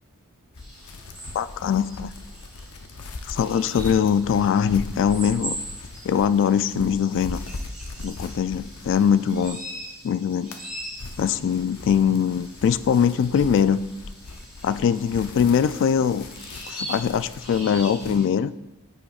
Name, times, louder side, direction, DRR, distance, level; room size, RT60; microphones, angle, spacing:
sound 1, 0.5-9.9 10.3-18.2, left 2 dB, 85° left, 0.7 m, -40 dB
sound 2, 0.6-18.3, right 1 dB, 5° right, 2.6 m, -41 dB
voice 1, 1.3-2.1 3.3-5.6 6.0-7.4 8.0-9.6 10.0-10.5 11.2-13.8 14.6-16.3 16.7-18.5, left 7 dB, 60° left, 14 dB, 0.3 m, -22 dB
9.6 x 8.8 x 2.4 m, 0.96 s
head